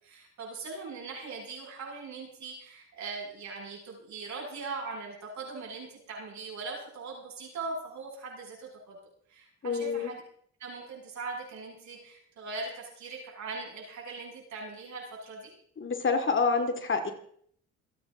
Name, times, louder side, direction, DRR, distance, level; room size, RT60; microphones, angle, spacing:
voice 1, 0.0-9.0 9.3-10.2 10.6-15.5, right 3 dB, 65° right, -2 dB, 7.4 m, -40 dB
voice 2, 9.6-10.1 15.8-17.1, left 4 dB, 40° left, 5 dB, 2.5 m, -27 dB
27.5 x 9.4 x 3.9 m, 0.64 s
cardioid pair, 90°, 30 cm